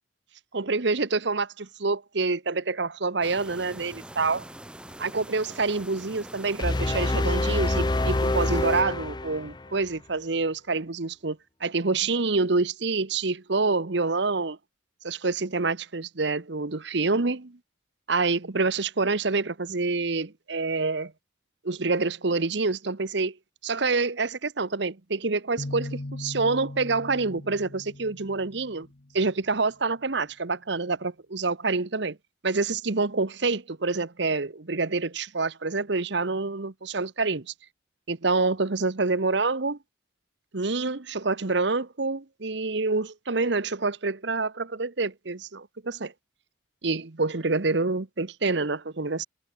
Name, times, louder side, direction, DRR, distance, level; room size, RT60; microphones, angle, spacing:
voice 1, 0.5-4.4 5.0-14.6 15.0-17.6 18.1-21.1 21.6-23.4 23.6-28.9 29.1-32.2 32.4-37.5 38.1-39.8 40.5-46.1 46.8-49.3, right 3 dB, 60° right, 1.0 m, -27 dB
sound 1, 3.2-8.8, right 1 dB, 5° right, 1.8 m, -44 dB
sound 2, 6.6-9.8, left 2 dB, 20° left, 0.6 m, -26 dB
sound 3, 25.6-29.3, left 1 dB, 50° left, 1.2 m, -39 dB
head